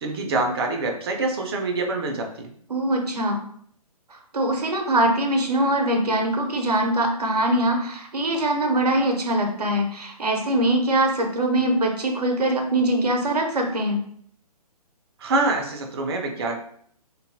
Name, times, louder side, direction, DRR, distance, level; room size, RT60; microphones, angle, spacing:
voice 1, 0.0-2.5 15.2-16.6, right 2 dB, 40° right, 3 dB, 0.5 m, -25 dB
voice 2, 2.7-3.4 4.3-14.0, right 1 dB, 80° right, 3 dB, 0.7 m, -22 dB
2.6 x 2.3 x 2.6 m, 0.63 s
figure-of-eight pair, 130°, 20 cm